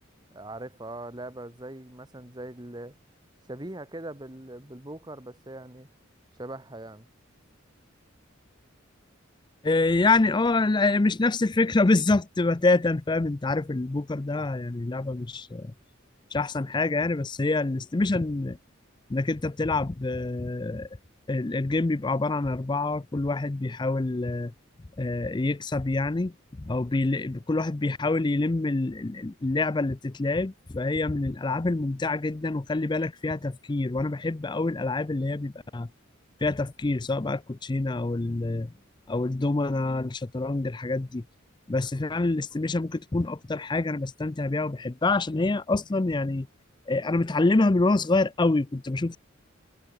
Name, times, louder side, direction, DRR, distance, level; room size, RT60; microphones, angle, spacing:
voice 1, 0.3-2.9 3.5-5.9 6.4-7.0, right 1 dB, 20° right, 1.6 m, -40 dB
voice 2, 9.6-15.7 16.3-18.6 19.1-20.9 21.3-24.5 25.0-26.3 26.6-35.9 36.4-38.7 39.1-41.2 41.7-46.5 46.9-49.2, left 2 dB, 20° left, 0.5 m, -26 dB
head